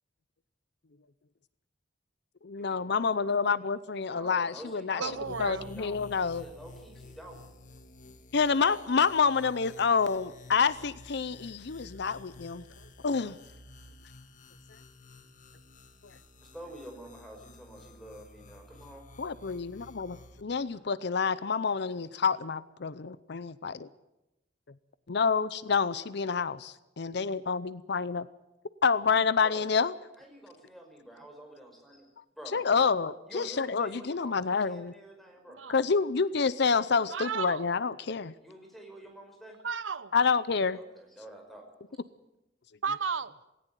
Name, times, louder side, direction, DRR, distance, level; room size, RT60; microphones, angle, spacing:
voice 1, 2.4-5.0 5.4-6.4 8.3-12.6 13.0-13.4 19.2-23.9 25.1-28.3 28.8-29.9 32.5-34.9 35.7-38.3 40.1-40.8, left 5 dB, 60° left, 17 dB, 0.6 m, -28 dB
voice 2, 4.0-7.4 16.5-19.0 29.4-29.7 30.2-32.1 32.4-32.7 33.3-35.6 38.4-39.6 40.7-41.6, right 1 dB, ahead, 2 dB, 5.6 m, -48 dB
sound 1, 5.0-20.4, left 2 dB, 45° left, 1.7 m, -52 dB
voice 3, 5.0-5.7 35.5-35.8 37.0-37.7 39.6-40.1 42.8-43.4, right 6 dB, 85° right, 16 dB, 0.9 m, -34 dB
18.0 x 18.0 x 9.2 m, 0.94 s
head